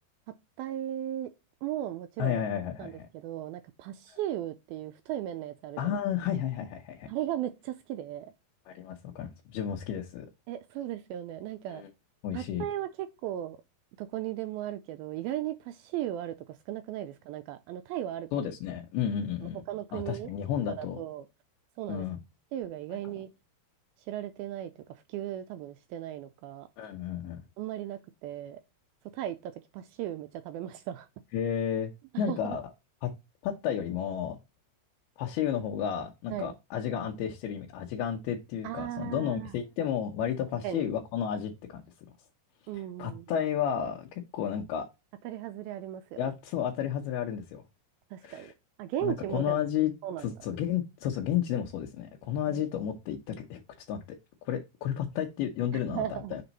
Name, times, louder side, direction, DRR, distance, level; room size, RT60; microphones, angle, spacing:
voice 1, 0.6-1.3 1.6-2.4 2.8-6.0 7.1-8.3 10.5-11.8 12.3-13.6 14.0-18.5 19.7-20.3 20.7-21.3 21.8-22.1 22.5-23.3 24.0-26.7 27.6-28.6 29.1-31.1 32.1-32.6 36.3-36.5 38.6-39.6 40.6-40.9 42.7-43.3 45.2-46.2 48.1-48.5 48.8-49.6 50.0-50.3 52.5-52.6 55.7-56.4, right 12 dB, 80° right, 2.2 m, -36 dB
voice 2, 2.2-3.1 5.8-7.1 8.7-10.3 11.7-11.9 12.2-12.6 18.3-19.6 19.9-21.0 21.9-22.2 26.8-27.4 31.3-31.9 32.2-32.7 33.0-33.1 33.4-34.4 35.2-41.8 42.7-44.9 46.2-47.6 48.2-48.5 49.0-49.9 50.2-53.6 53.9-54.2 54.4-56.4, left 9 dB, 80° left, 2.7 m, -32 dB
7.0 x 3.6 x 4.0 m
omnidirectional pair, 4.6 m